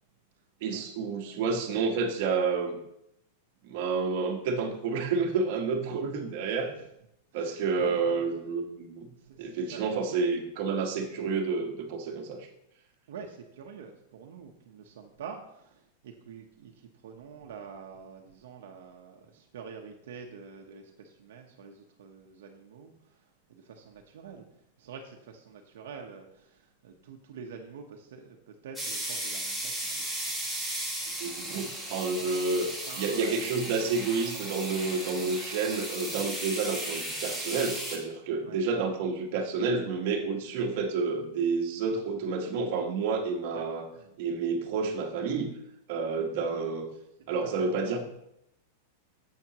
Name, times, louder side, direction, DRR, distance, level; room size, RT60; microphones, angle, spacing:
voice 1, 0.6-2.8 3.6-6.7 7.3-9.1 9.4-12.5 31.2-32.7 33.0-43.9 44.2-45.6 45.9-46.9 47.3-48.0, right 4 dB, 45° right, 2 dB, 1.3 m, -29 dB
voice 2, 7.3-8.3 9.2-9.8 10.1-10.2 13.1-22.9 23.5-24.4 24.8-30.0 30.3-30.4 31.2-31.6 31.9-32.3 32.9-33.4 33.8-34.0 38.4-38.6 43.5-43.6 43.9-44.1 46.1-46.7 47.4-47.5 47.8-48.0, right 6 dB, 70° right, 2 dB, 1.0 m, -47 dB
sound 1, 28.8-38.0, right 1 dB, 5° left, 1.4 m, -35 dB
10.5 x 7.6 x 3.0 m, 0.79 s
supercardioid pair, 175°, 0 cm